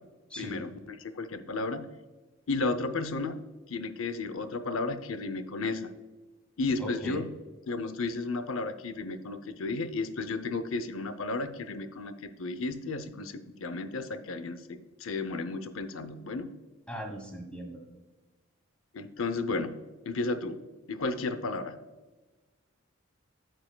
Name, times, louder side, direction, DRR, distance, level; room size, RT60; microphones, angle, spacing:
voice 1, 0.4-1.9 2.5-3.4 3.7-5.9 6.6-7.3 7.7-16.5 18.9-19.8 20.1-20.6 20.9-21.8, left 3 dB, 70° left, 12 dB, 0.6 m, -33 dB
voice 2, 6.8-7.2 16.9-17.8, equal, 5° left, 2 dB, 1.3 m, -39 dB
9.0 x 7.6 x 2.2 m, 1.2 s
head